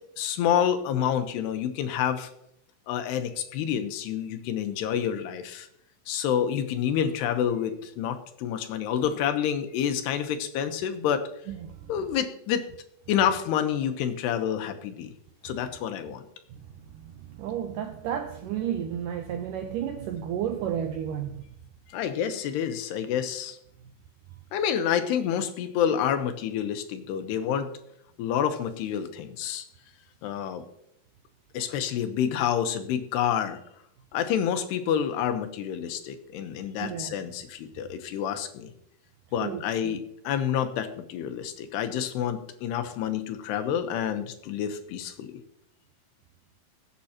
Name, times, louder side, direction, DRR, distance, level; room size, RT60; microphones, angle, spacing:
voice 1, 0.2-2.3 2.9-5.7 6.1-11.2 11.9-12.6 13.1-15.1 15.4-16.2 21.9-23.6 24.5-27.7 28.2-29.6 30.2-30.6 31.5-33.6 34.1-38.7 39.3-45.4, left 9 dB, 90° left, 3.1 m, -28 dB
voice 2, 16.9-21.4 36.8-37.1 39.4-40.0, right 9 dB, 90° right, 1.9 m, -32 dB
21.0 x 8.4 x 2.9 m
omnidirectional pair, 4.6 m